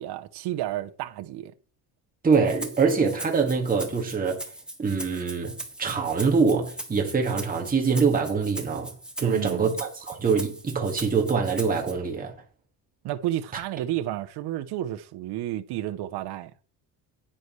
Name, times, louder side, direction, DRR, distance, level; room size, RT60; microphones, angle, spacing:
voice 1, 0.0-1.5 9.2-9.7 13.0-16.5, right 13 dB, 70° right, 0.9 m, -31 dB
voice 2, 2.2-4.5 4.8-8.9 9.2-12.4 13.5-13.6, right 5 dB, 20° right, 2.0 m, -24 dB
Rattle (instrument), 2.3-11.9, right 1 dB, ahead, 1.8 m, -40 dB
10.0 x 9.8 x 3.2 m
cardioid pair, 135°, 41 cm